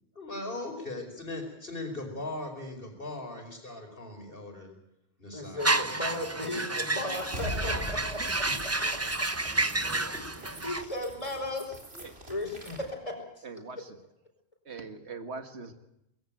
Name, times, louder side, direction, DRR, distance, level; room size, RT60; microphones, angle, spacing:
voice 1, 0.2-4.8 5.2-5.8 6.1-6.3 8.8-8.9, left 2 dB, 60° left, 4 dB, 5.3 m, -39 dB
voice 2, 5.3-9.0 10.6-11.8 12.3-13.5, left 1 dB, 30° left, 3 dB, 4.9 m, -36 dB
sound 1, 5.6-10.8, right 2 dB, 15° right, 0.8 m, -30 dB
sound 2, 7.1-12.9, equal, 70° right, 4.2 m, -42 dB
voice 3, 9.4-10.7 11.0-11.4 11.9-12.3 13.4-14.0 14.7-15.7, right 4 dB, 90° right, 8 dB, 2.1 m, -44 dB
21.5 x 16.0 x 9.2 m, 0.82 s
omnidirectional pair, 1.1 m